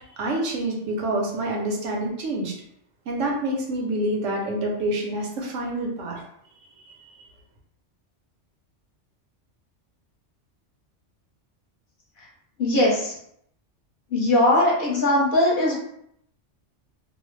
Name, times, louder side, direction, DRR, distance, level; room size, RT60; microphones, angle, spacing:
voice 1, 0.2-2.5 3.1-6.2 6.8-6.9, right 1 dB, 90° right, 0 dB, 1.0 m, -27 dB
voice 2, 12.6-13.2 14.1-15.7, left 1 dB, 50° left, -3 dB, 0.8 m, -20 dB
2.6 x 2.0 x 3.1 m, 0.72 s
omnidirectional pair, 1.2 m